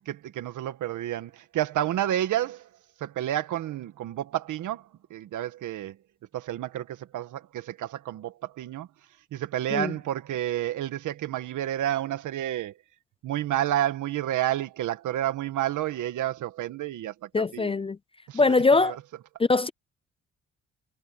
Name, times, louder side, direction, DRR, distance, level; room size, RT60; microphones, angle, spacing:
voice 1, 0.1-2.7 3.0-6.0 6.3-8.9 9.3-12.7 13.2-17.8 18.3-18.6 18.8-19.0, right 12 dB, 80° right, 1.8 m, -30 dB
voice 2, 17.3-18.0 18.3-19.0 19.4-19.7, left 3 dB, 20° left, 0.4 m, -22 dB
cardioid pair, 90°, 30 cm